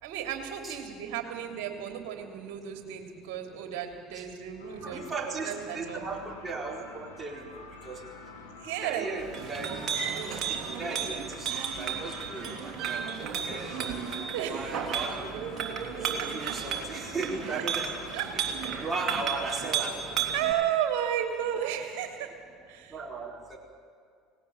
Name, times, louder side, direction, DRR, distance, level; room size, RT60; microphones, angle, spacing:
voice 1, 0.0-6.0 8.6-9.1 14.3-14.7 16.2-16.5 17.6-17.7 18.1-18.3 20.3-22.3 22.7-22.9, right 10 dB, 65° right, 4 dB, 3.0 m, -33 dB
sound 1, 4.6-19.6, left 3 dB, 90° left, 2.2 m, -48 dB
voice 2, 4.8-7.5 7.8-8.0 8.8-9.7 10.3-13.1 13.4-14.0 14.5-15.3 15.7-15.8 16.3-18.0 18.3-18.4 18.8-20.0 22.9-23.6, right 3 dB, 25° right, 0 dB, 4.4 m, -37 dB
Chink clink, 9.2-20.5, right 7 dB, 45° right, 3.0 m, -33 dB
18.5 x 17.5 x 8.8 m, 2.3 s
hypercardioid pair, 70°, 0 cm